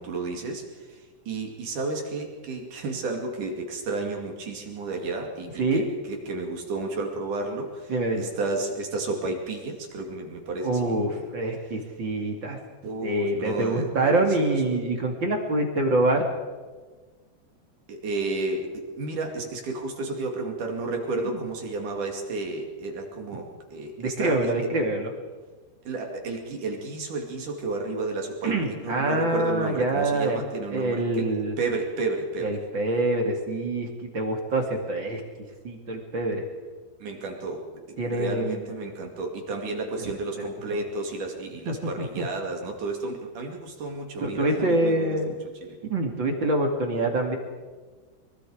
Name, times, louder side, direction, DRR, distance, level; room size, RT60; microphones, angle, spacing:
voice 1, 0.0-11.2 12.8-14.8 17.9-18.7 19.0-24.5 25.8-31.3 31.6-32.6 37.0-45.8, right 3 dB, 55° right, 2 dB, 3.8 m, -32 dB
voice 2, 5.6-5.9 7.9-8.3 10.6-12.6 13.0-16.3 21.2-21.4 24.0-25.1 28.4-30.4 30.7-31.5 32.4-35.2 35.6-36.4 38.0-38.7 40.0-40.1 40.4-40.8 41.7-42.2 44.2-45.3 45.9-47.4, right 2 dB, 35° right, 2 dB, 2.4 m, -26 dB
23.5 x 23.5 x 5.0 m, 1.4 s
omnidirectional pair, 4.7 m